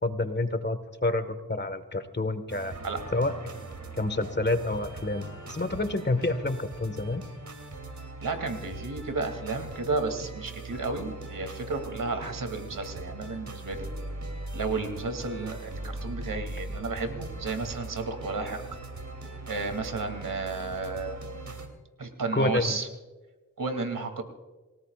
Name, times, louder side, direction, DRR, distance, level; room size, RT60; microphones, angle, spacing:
voice 1, 0.0-2.7 3.1-3.3 4.0-7.2 22.3-22.8, left 2 dB, 30° left, 10 dB, 1.6 m, -28 dB
sound 1, 2.5-21.7, right 2 dB, 60° right, 3.1 m, -40 dB
voice 2, 8.2-13.9 14.5-18.6 19.5-21.2 22.0-22.9 23.6-24.2, right 3 dB, 75° right, 6 dB, 2.8 m, -32 dB
28.5 x 17.5 x 2.5 m, 1.2 s
cardioid pair, 55°, 33 cm